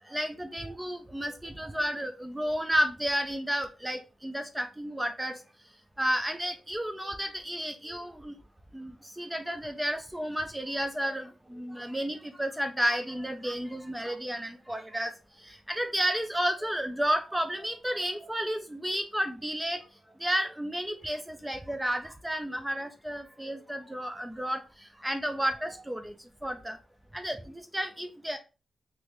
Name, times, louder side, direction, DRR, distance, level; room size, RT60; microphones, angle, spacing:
voice 1, 0.1-5.4 6.0-8.3 8.7-15.1 15.4-19.8 20.2-24.6 25.0-26.1 26.4-26.8 27.1-28.4, equal, 5° right, 7 dB, 0.3 m, -32 dB
3.2 x 2.7 x 2.9 m, 0.31 s
wide cardioid pair, 130°, 0 cm